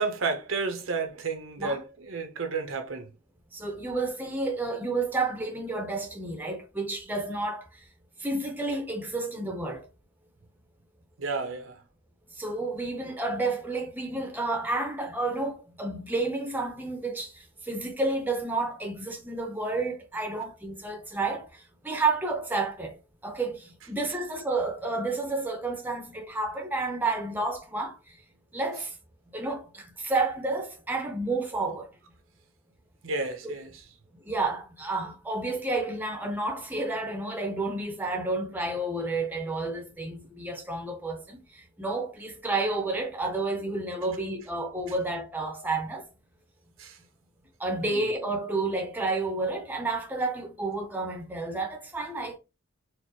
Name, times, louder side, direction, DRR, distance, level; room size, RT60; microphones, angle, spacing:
voice 1, 0.0-3.1 11.2-11.8 33.0-33.8 46.8-47.0 47.8-48.1, right 4 dB, 75° right, 0.8 m, -31 dB
voice 2, 3.5-7.7 8.2-9.9 12.3-23.0 23.2-28.2 28.5-28.9 29.3-31.9 33.4-33.5 34.2-46.1 47.6-52.4, right 2 dB, 10° right, 0.6 m, -30 dB
4.4 x 2.1 x 3.0 m
head